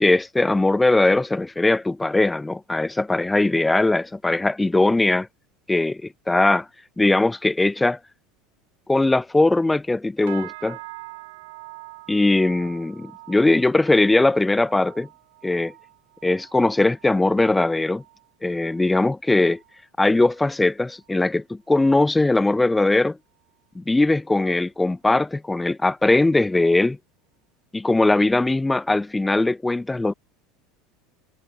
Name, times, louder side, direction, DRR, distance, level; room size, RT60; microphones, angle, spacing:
voice 1, 0.0-5.3 5.7-6.7 7.0-8.0 8.9-10.8 12.1-15.1 15.4-15.7 16.2-18.0 18.4-19.6 20.0-23.2 23.8-27.0 27.7-30.1, left 2 dB, 10° left, 0.4 m, -20 dB
sound 1, 10.3-19.8 20.1-20.6 21.0-21.3 21.8-21.9, right 23 dB, 75° right, 1.6 m, -45 dB
hypercardioid pair, 90°, 0 cm